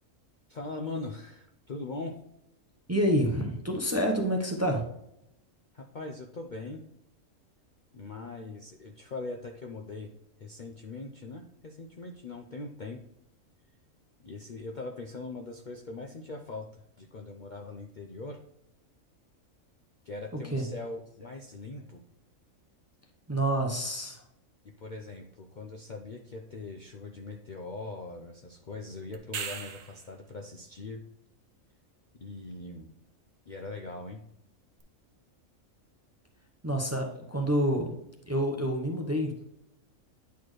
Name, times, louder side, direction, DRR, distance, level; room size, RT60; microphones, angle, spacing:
voice 1, 0.5-2.2 5.7-6.8 7.9-10.1 10.4-13.0 14.2-18.4 20.0-22.0 24.6-31.0 32.1-32.9 33.5-34.2, left 3 dB, 50° left, 2 dB, 0.6 m, -41 dB
voice 2, 2.9-4.9 20.5-20.6 23.3-24.2 36.6-37.9 38.3-39.4, equal, 15° right, 2 dB, 0.7 m, -28 dB
sound 1, 29.1-30.1 34.8-34.9, right 6 dB, 70° right, 1.1 m, -37 dB
9.3 x 4.3 x 3.1 m, 0.82 s
omnidirectional pair, 1.4 m